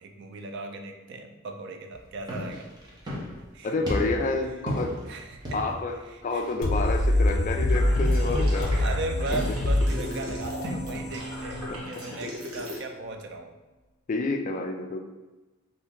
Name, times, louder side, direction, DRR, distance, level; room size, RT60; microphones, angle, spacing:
voice 1, 0.0-2.7 3.5-3.7 5.1-5.6 6.1-6.5 8.8-13.5, right 2 dB, 55° right, 5 dB, 0.4 m, -37 dB
sound 1, 1.9-10.8, equal, 20° right, 0.7 m, -37 dB
voice 2, 3.6-5.0 5.5-5.9 6.2-8.7 11.7-11.8 14.1-15.0, left 3 dB, 35° left, 5 dB, 0.3 m, -29 dB
sound 2, 6.6-12.3, left 1 dB, 75° left, 0.6 m, -26 dB
sound 3, 7.7-12.8, left 1 dB, 85° right, 0.8 m, -39 dB
2.8 x 2.6 x 3.5 m, 1.1 s
head